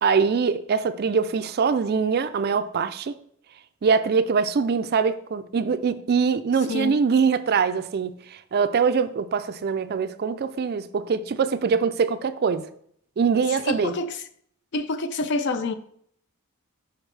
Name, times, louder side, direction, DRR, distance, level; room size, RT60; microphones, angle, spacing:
voice 1, 0.0-3.2 3.8-12.7 13.2-13.9, right 5 dB, 45° right, 0.4 m, -23 dB
voice 2, 13.6-14.2 14.7-15.7, left 2 dB, 50° left, 0.4 m, -27 dB
6.2 x 5.7 x 3.3 m
head